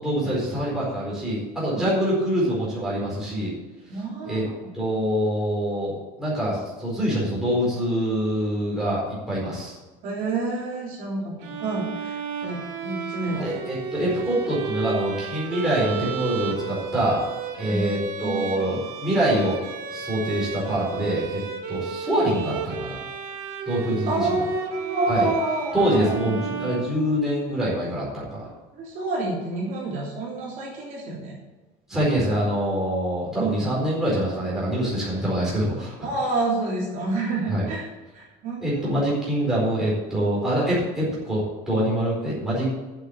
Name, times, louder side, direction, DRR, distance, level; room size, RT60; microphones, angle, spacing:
voice 1, 0.0-3.5 4.2-4.4 4.7-9.0 9.3-9.8 13.3-17.2 17.5-19.6 19.9-21.4 21.7-23.0 23.7-24.4 25.1-25.3 25.7-28.5 31.9-36.1 37.5-37.7 38.6-42.7, right 1 dB, ahead, -8 dB, 4.4 m, -25 dB
voice 2, 3.9-4.6 10.0-13.5 17.7-17.9 18.2-18.4 24.1-26.7 28.7-31.3 33.4-33.6 36.0-37.9 38.1-39.0, right 2 dB, 45° right, -4 dB, 3.3 m, -28 dB
Bowed string instrument, 11.4-27.5, right 6 dB, 80° right, 2.3 m, -33 dB
8.7 x 7.4 x 8.8 m, 1.2 s
cardioid pair, 180°, 19 cm